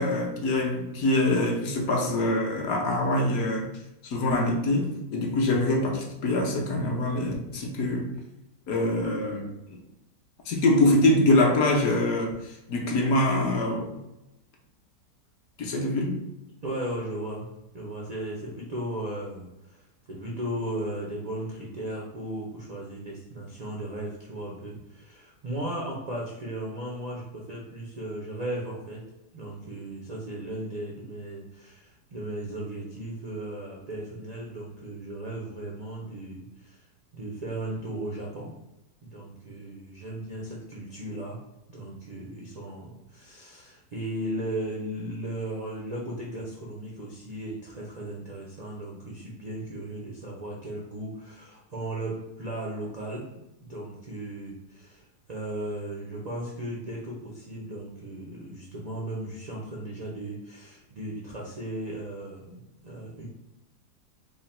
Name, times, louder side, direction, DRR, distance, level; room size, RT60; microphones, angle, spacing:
voice 1, 0.0-3.7 4.0-8.1 8.7-9.5 10.5-14.0 15.6-16.2, left 1 dB, 65° left, 0 dB, 1.1 m, -24 dB
voice 2, 16.6-29.0 29.3-36.8 37.1-38.5 39.0-41.4 41.7-53.3 53.6-63.2, right 1 dB, 85° right, -3 dB, 0.3 m, -36 dB
3.8 x 2.1 x 4.1 m, 0.94 s
omnidirectional pair, 1.8 m